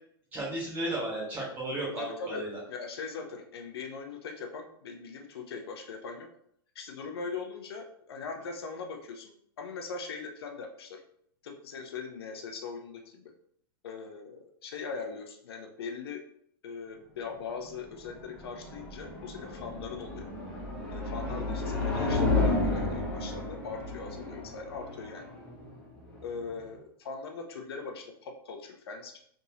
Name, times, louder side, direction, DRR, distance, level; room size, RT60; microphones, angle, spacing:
voice 1, 0.3-2.6 21.2-21.3, right 1 dB, 15° right, -6 dB, 1.5 m, -34 dB
voice 2, 2.0-6.3 6.7-9.3 9.6-11.0 11.4-13.3 13.8-16.2 16.6-20.3 20.9-25.2 26.2-29.2, left 5 dB, 85° left, 3 dB, 0.8 m, -40 dB
sound 1, 17.7-26.7, left 2 dB, 10° left, 0.8 m, -32 dB
4.0 x 3.6 x 2.8 m, 0.68 s
supercardioid pair, 170°, 13 cm